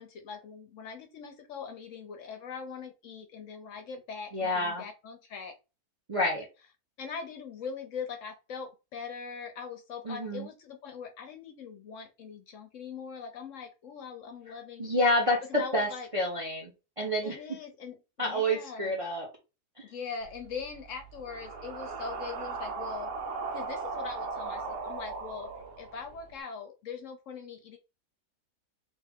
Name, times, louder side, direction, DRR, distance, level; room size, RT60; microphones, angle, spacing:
voice 1, 0.0-5.6 7.0-14.9 15.5-16.1 17.2-18.9 19.8-23.1 23.5-25.5 25.8-27.8, left 6 dB, 65° left, 6 dB, 0.9 m, -41 dB
voice 2, 4.3-4.8 6.1-6.4 10.0-10.5 14.8-16.7 17.0-17.4 18.2-19.3 19.8-19.9, left 1 dB, 25° right, -1 dB, 0.8 m, -28 dB
sound 1, 20.2-26.3, right 4 dB, 90° right, 1.2 m, -38 dB
3.3 x 2.8 x 3.5 m, 0.29 s
omnidirectional pair, 1.7 m